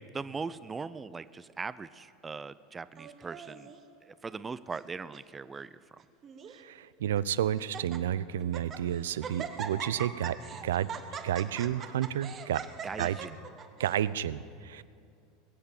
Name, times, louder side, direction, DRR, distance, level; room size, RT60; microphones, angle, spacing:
voice 1, 0.1-3.7 4.0-6.0 12.8-13.5, right 4 dB, 20° right, 16 dB, 0.4 m, -40 dB
Laughter, 3.0-3.8 4.5-4.9 5.1-5.2 6.0-6.6 7.1-7.2 7.6-8.0 8.4-8.8 9.2-14.0, right 6 dB, 40° right, 1.3 m, -41 dB
voice 2, 6.5-10.4 10.6-10.9 11.2-12.6 13.0-13.2 13.8-14.8, right 10 dB, 80° right, 17 dB, 0.4 m, -31 dB
21.0 x 8.1 x 7.0 m, 2.4 s
hypercardioid pair, 90°, 0 cm